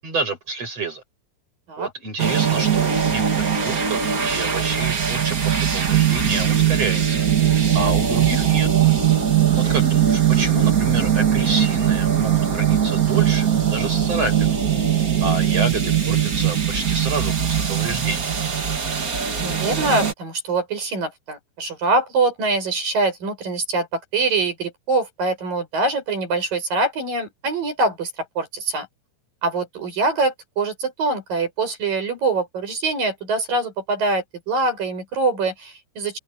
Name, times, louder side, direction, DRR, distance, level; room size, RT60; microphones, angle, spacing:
voice 1, 0.0-1.0 1.8-7.3 7.7-8.7 9.6-14.6 15.2-18.4, right 3 dB, 35° right, 9.1 m, -29 dB
sound 1, 2.2-20.1, right 9 dB, 90° right, 0.7 m, -20 dB
voice 2, 9.6-10.0 19.4-28.9 29.4-36.2, right 3 dB, 55° right, 9.1 m, -24 dB
open air
omnidirectional pair, 4.9 m